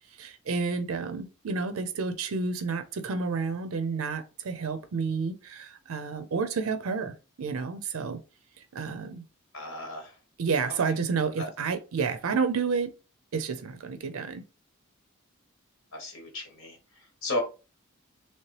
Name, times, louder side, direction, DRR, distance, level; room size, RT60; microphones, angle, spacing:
voice 1, 0.2-8.2 8.6-9.2 10.4-12.9 13.3-14.4, right 5 dB, 75° right, 0.5 m, -30 dB
voice 2, 9.5-10.2 10.7-10.8 11.4-11.5 15.9-17.4, left 2 dB, 65° left, 1.1 m, -35 dB
3.1 x 2.9 x 3.1 m
head